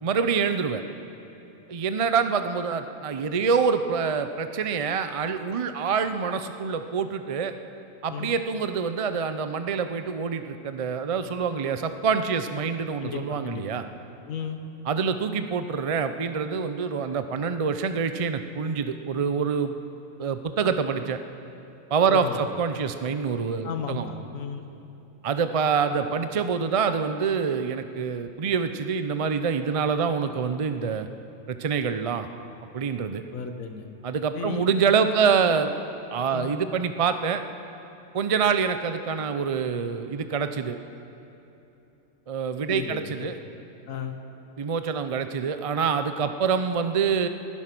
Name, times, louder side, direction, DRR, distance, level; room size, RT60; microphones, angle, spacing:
voice 1, 0.0-0.8 1.7-7.5 8.0-13.8 14.9-19.8 20.2-21.2 21.9-24.0 25.2-31.1 31.5-32.3 32.7-33.2 34.0-35.7 36.1-37.4 38.1-40.8 42.3-43.4 44.6-47.3, right 6 dB, 50° right, 9 dB, 0.4 m, -26 dB
voice 2, 13.0-13.8 14.3-14.6 22.1-22.4 23.6-24.7 33.3-33.8 34.3-34.7 35.0-35.3 36.3-36.5 42.7-43.3 43.9-44.2, left 6 dB, 75° left, 6 dB, 1.6 m, -34 dB
20.0 x 12.0 x 6.0 m, 2.8 s
omnidirectional pair, 1.4 m